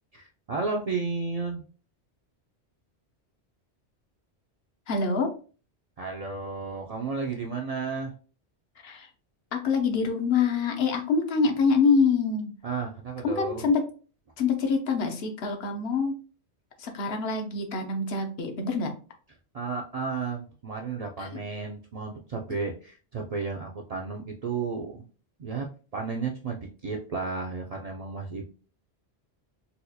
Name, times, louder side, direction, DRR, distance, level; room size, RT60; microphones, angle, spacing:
voice 1, 0.1-1.6 6.0-8.1 12.6-13.6 19.5-25.0 25.4-25.7 25.9-28.5, right 4 dB, 55° right, 0 dB, 0.4 m, -33 dB
voice 2, 4.9-5.3 8.8-9.1 9.5-12.5 13.2-13.8 14.4-16.1 16.8-18.9 21.2-21.3, left 5 dB, 70° left, 4 dB, 0.9 m, -25 dB
4.2 x 2.3 x 2.7 m, 0.37 s
omnidirectional pair, 1.1 m